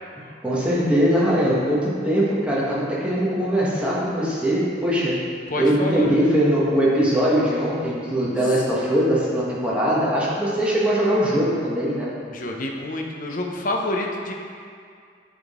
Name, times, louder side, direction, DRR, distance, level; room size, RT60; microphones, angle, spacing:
voice 1, 0.4-5.2 5.6-12.1, equal, 5° right, -7 dB, 1.3 m, -21 dB
voice 2, 5.5-6.2 8.4-8.5 12.3-14.3, left 1 dB, 45° left, 1 dB, 0.7 m, -28 dB
10.5 x 3.8 x 3.6 m, 2.2 s
head